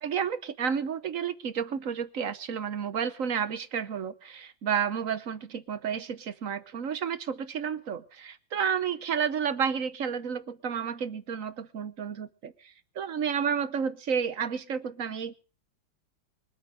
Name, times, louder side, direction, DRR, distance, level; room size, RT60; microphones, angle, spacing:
voice 1, 0.0-15.3, right 7 dB, 50° right, 14 dB, 1.1 m, -31 dB
24.5 x 8.5 x 5.0 m, 0.38 s
omnidirectional pair, 2.1 m